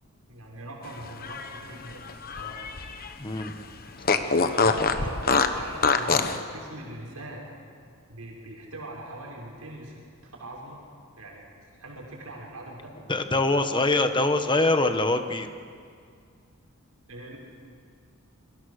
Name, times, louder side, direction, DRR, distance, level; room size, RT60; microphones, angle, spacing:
voice 1, 0.3-2.0 2.4-2.7 4.5-5.2 5.5-7.5 8.1-10.8 11.2-13.0 17.1-17.4, right 1 dB, 85° right, -2 dB, 6.0 m, -42 dB
Fart, 1.1-3.1 3.4-3.5 4.0-6.4, left 4 dB, 45° left, 1.2 m, -24 dB
voice 2, 3.2-3.5 13.1-15.5, left 2 dB, 20° left, 8 dB, 1.3 m, -23 dB
27.0 x 23.5 x 6.6 m, 2.2 s
head